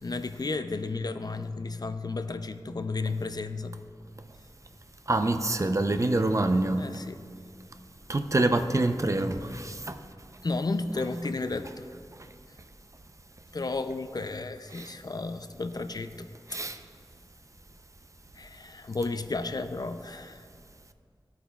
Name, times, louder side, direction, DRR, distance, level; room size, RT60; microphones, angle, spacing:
voice 1, 0.0-3.8 6.8-7.2 10.4-11.9 13.5-16.6 18.3-20.5, left 3 dB, 45° left, 0.4 m, -33 dB
voice 2, 5.1-6.8 8.1-10.0 14.7-14.9 16.5-16.8, right 2 dB, 35° right, 0.5 m, -26 dB
13.0 x 8.3 x 2.3 m
wide cardioid pair, 50°, 9 cm